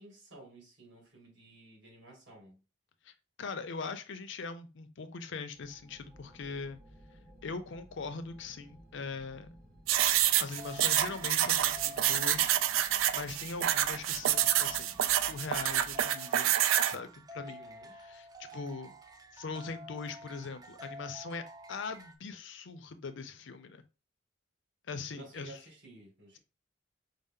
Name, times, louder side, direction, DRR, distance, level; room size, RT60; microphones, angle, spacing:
voice 1, 0.0-2.6 17.4-17.9 25.1-26.4, right 2 dB, 65° right, 2.2 m, -53 dB
voice 2, 3.4-6.8 7.4-9.5 10.4-16.5 16.8-17.6 17.9-19.0 19.3-23.8 24.9-25.6, left 4 dB, 65° left, 0.5 m, -41 dB
sound 1, 5.5-16.0, equal, 50° right, 1.4 m, -56 dB
sound 2, 9.9-17.0, right 11 dB, 90° right, 0.3 m, -27 dB
sound 3, 10.1-22.1, equal, 20° right, 0.4 m, -50 dB
5.3 x 2.0 x 3.6 m
head